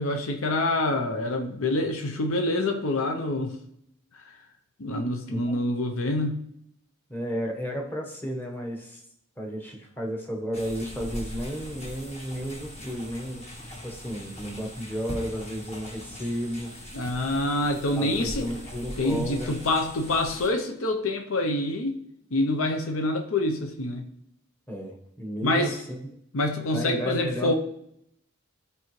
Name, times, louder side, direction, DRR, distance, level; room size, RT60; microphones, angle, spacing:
voice 1, 0.0-3.6 4.1-4.4 4.8-6.4 16.9-18.5 19.0-22.0 22.3-24.1 25.4-25.8 26.3-27.5, left 2 dB, 70° left, 5 dB, 0.8 m, -26 dB
voice 2, 7.1-9.0 9.4-16.7 18.0-19.5 24.7-26.0 26.7-27.5, equal, 10° left, 0 dB, 1.1 m, -33 dB
sound 1, 10.5-20.5, equal, 30° left, 1.5 m, -40 dB
13.0 x 4.7 x 3.2 m, 0.75 s
head